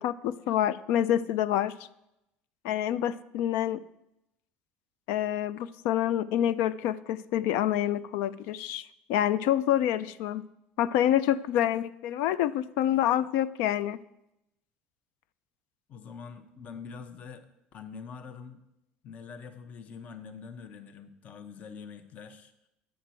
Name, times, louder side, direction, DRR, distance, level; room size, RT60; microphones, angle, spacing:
voice 1, 0.0-1.7 2.6-3.8 5.1-10.4 10.8-14.0, left 11 dB, 80° left, 17 dB, 0.4 m, -27 dB
voice 2, 15.9-18.6 19.0-22.5, left 6 dB, 40° left, 10 dB, 0.8 m, -45 dB
10.0 x 7.7 x 4.4 m, 0.86 s
cardioid pair, 135°, 4 cm